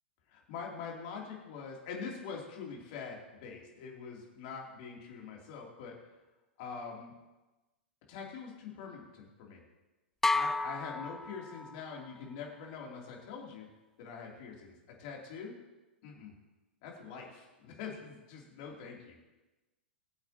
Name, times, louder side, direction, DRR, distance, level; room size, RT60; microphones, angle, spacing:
voice 1, 0.3-6.0 6.6-7.1 8.1-9.6 10.3-13.7 14.0-15.5 16.0-16.3 16.8-19.2, left 5 dB, 45° left, -1 dB, 3.0 m, -44 dB
sound 1, 10.2-12.0, left 3 dB, 5° left, 0.3 m, -32 dB
20.5 x 8.2 x 2.9 m, 1.1 s
figure-of-eight pair, 100°, 6 cm